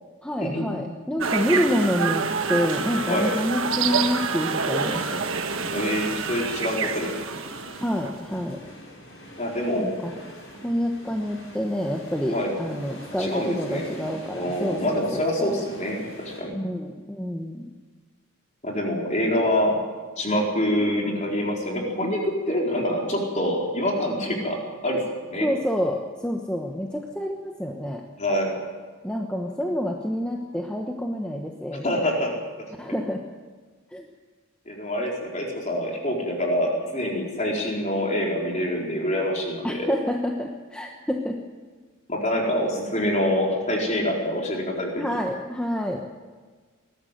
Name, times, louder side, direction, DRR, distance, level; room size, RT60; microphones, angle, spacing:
voice 1, 0.2-5.3 7.8-8.6 9.7-10.1 10.6-15.6 16.5-17.7 25.4-28.0 29.0-32.0 32.8-33.2 33.9-34.1 39.6-41.4 45.0-46.0, equal, 5° left, 1 dB, 1.1 m, -28 dB
sound 1, 1.2-8.1, right 5 dB, 65° right, 1.3 m, -27 dB
sound 2, 4.6-16.4, equal, 60° left, 6.5 m, -43 dB
voice 2, 5.7-7.1 9.4-10.0 12.3-12.5 13.2-13.8 14.3-16.5 18.6-19.7 20.2-24.6 24.8-25.0 25.3-25.5 28.2-28.5 31.8-32.3 34.7-39.9 42.1-45.1, left 1 dB, 35° left, -1 dB, 4.3 m, -25 dB
20.5 x 14.0 x 9.2 m, 1.5 s
head